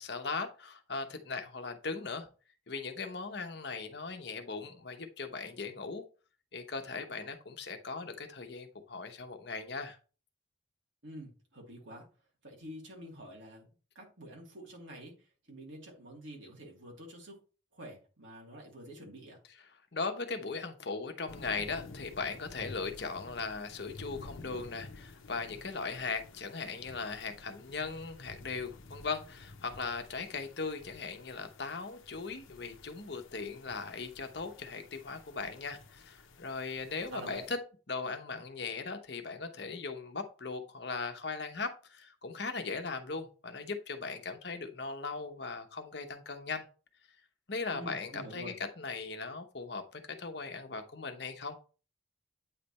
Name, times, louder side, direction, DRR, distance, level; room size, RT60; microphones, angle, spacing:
voice 1, 0.0-2.3 2.7-6.0 6.5-10.0 19.9-37.6 37.9-46.6 47.5-51.6, left 4 dB, 55° left, 0.9 m, -38 dB
voice 2, 11.0-12.0 12.4-13.7 13.9-15.1 15.5-17.4 17.7-19.4 37.1-37.4 47.7-48.5, right 1 dB, 75° right, 2.7 m, -47 dB
sound 1, 21.3-37.5, left 2 dB, 85° left, 0.8 m, -52 dB
8.7 x 3.3 x 4.2 m
head